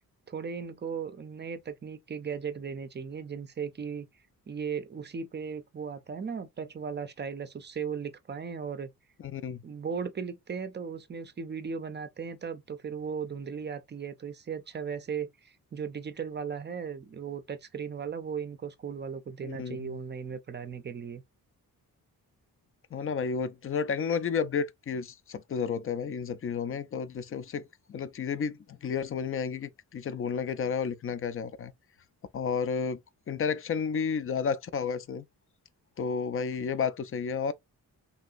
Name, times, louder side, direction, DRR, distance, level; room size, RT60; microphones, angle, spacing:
voice 1, 0.3-4.1 4.5-8.9 9.6-21.2, right 6 dB, 30° right, 0.5 m, -37 dB
voice 2, 9.2-9.6 19.4-20.0 22.9-31.7 32.3-33.0 33.3-35.3 36.0-37.5, left 6 dB, 40° left, 0.4 m, -32 dB
3.1 x 2.8 x 2.4 m
cardioid pair, 85°, 37 cm